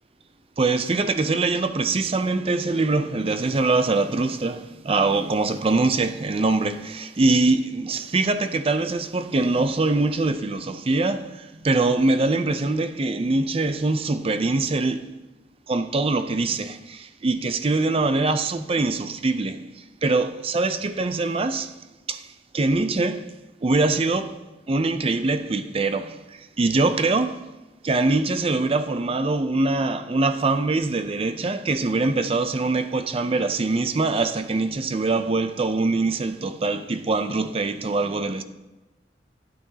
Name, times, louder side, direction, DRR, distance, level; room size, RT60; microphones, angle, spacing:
voice 1, 0.6-15.1 15.7-21.7 22.1-23.3 23.6-24.4 24.7-27.4 27.8-38.4, right 3 dB, 35° right, 0.5 m, -23 dB
12.0 x 8.7 x 2.8 m
head